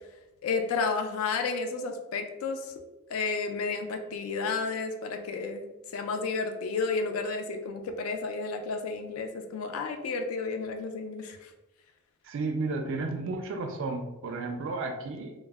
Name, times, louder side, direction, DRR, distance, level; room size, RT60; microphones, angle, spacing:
voice 1, 0.4-2.7 3.1-5.6 5.9-11.5, left 4 dB, 90° left, 6 dB, 0.3 m, -31 dB
voice 2, 12.2-15.3, right 3 dB, 65° right, 4 dB, 0.3 m, -33 dB
2.0 x 2.0 x 3.3 m, 1.0 s
head